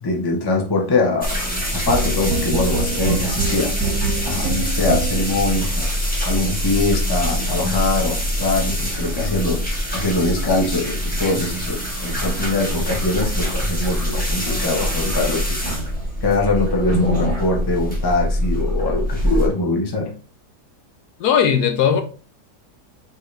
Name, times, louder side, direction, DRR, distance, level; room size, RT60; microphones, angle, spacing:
voice 1, 0.0-3.7 4.2-5.9 6.3-9.6 9.9-15.6 16.2-20.1, left 2 dB, 20° left, 0.6 m, -23 dB
sound 1, 1.2-19.5, equal, 5° left, 1.2 m, -24 dB
sound 2, 1.9-5.4, right 4 dB, 65° right, 1.0 m, -25 dB
voice 2, 21.2-22.0, left 8 dB, 75° left, 1.1 m, -17 dB
4.8 x 3.1 x 3.2 m
omnidirectional pair, 1.8 m